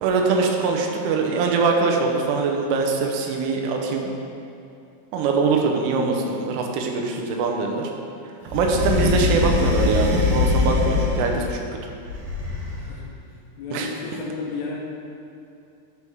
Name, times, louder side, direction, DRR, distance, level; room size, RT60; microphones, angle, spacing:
voice 1, 0.0-4.1 5.1-7.9 8.5-11.9 13.7-13.9, right 4 dB, 90° right, 1 dB, 3.3 m, -22 dB
sound 1, 8.5-11.5 12.0-12.9, left 4 dB, 65° right, 2.1 m, -22 dB
voice 2, 13.6-14.8, left 3 dB, 75° left, -3 dB, 2.8 m, -32 dB
11.0 x 7.0 x 3.5 m, 2.7 s
omnidirectional pair, 5.6 m